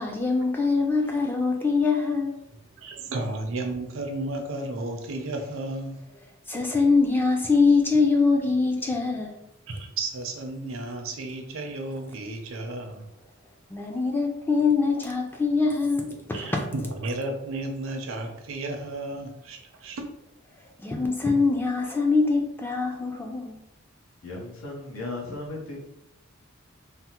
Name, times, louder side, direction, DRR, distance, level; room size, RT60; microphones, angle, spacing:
voice 1, 0.0-2.3 6.5-9.3 13.7-16.6 20.8-23.6, left 4 dB, 10° left, 1 dB, 0.3 m, -23 dB
voice 2, 2.8-6.0 9.7-13.1 16.3-20.0, right 2 dB, 75° right, 4 dB, 0.5 m, -33 dB
voice 3, 24.2-25.8, left 2 dB, 90° left, -2 dB, 0.9 m, -36 dB
3.3 x 2.0 x 2.8 m, 0.86 s
head